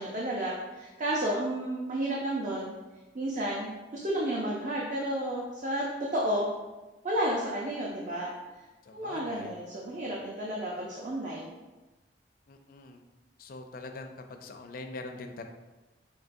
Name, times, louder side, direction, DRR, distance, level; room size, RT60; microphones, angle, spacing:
voice 1, 0.0-2.7 3.1-5.9 6.1-6.5 7.0-8.3 8.9-11.5, right 1 dB, 45° right, -3 dB, 0.5 m, -31 dB
voice 2, 8.8-9.6 10.0-10.1 12.5-13.0 13.4-15.4, left 3 dB, 55° left, 5 dB, 0.4 m, -43 dB
5.4 x 3.0 x 2.5 m, 1.1 s
head